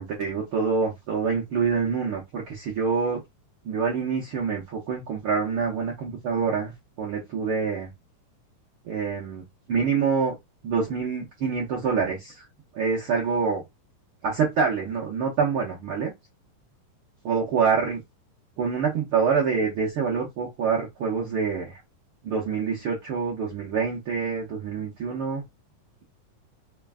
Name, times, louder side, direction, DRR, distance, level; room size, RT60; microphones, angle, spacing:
voice 1, 0.0-3.2 3.6-7.9 8.8-10.4 10.6-12.5 12.7-13.6 14.2-16.1 17.2-18.0 18.6-21.8 22.2-25.4, right 5 dB, 70° right, 1.2 m, -26 dB
5.1 x 2.3 x 3.5 m
omnidirectional pair, 3.7 m